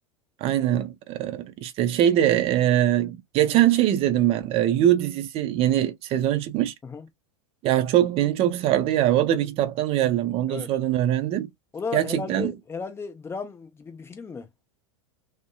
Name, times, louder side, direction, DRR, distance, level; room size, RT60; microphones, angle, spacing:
voice 1, 0.4-6.7 7.6-11.5 11.9-12.5, right 12 dB, 35° right, 0.5 m, -22 dB
voice 2, 11.7-14.5, left 5 dB, 15° left, 0.7 m, -35 dB
2.7 x 2.1 x 2.4 m
figure-of-eight pair, 90°, 17 cm